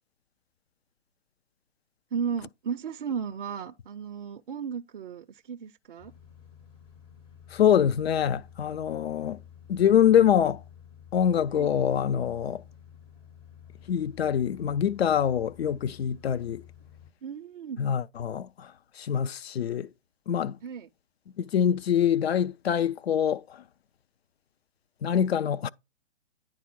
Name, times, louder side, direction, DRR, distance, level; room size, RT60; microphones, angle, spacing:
voice 1, 2.1-6.1 11.5-11.7 15.7-15.8 17.2-17.8 20.6-20.9, right 7 dB, 50° right, 0.4 m, -35 dB
sound 1, 6.0-17.1, left 9 dB, 15° left, 0.5 m, -51 dB
voice 2, 7.5-9.4 9.7-10.6 11.1-12.6 13.9-16.6 17.8-19.9 20.3-20.6 21.4-23.6 25.0-25.7, left 9 dB, 60° left, 0.4 m, -25 dB
9.5 x 3.6 x 4.4 m
figure-of-eight pair, 125°, 36 cm